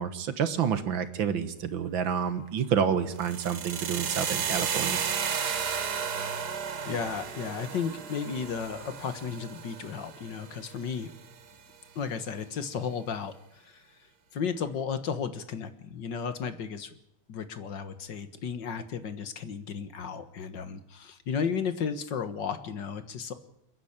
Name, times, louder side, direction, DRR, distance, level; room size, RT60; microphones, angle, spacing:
voice 1, 0.0-5.0, right 7 dB, 70° right, 11 dB, 2.0 m, -29 dB
sound 1, 3.2-11.2, right 7 dB, 55° right, 1.8 m, -33 dB
voice 2, 6.9-11.1 12.0-13.8 14.3-16.9 17.3-23.3, left 6 dB, 60° left, 11 dB, 2.0 m, -34 dB
29.0 x 10.5 x 8.7 m, 0.80 s
omnidirectional pair, 2.3 m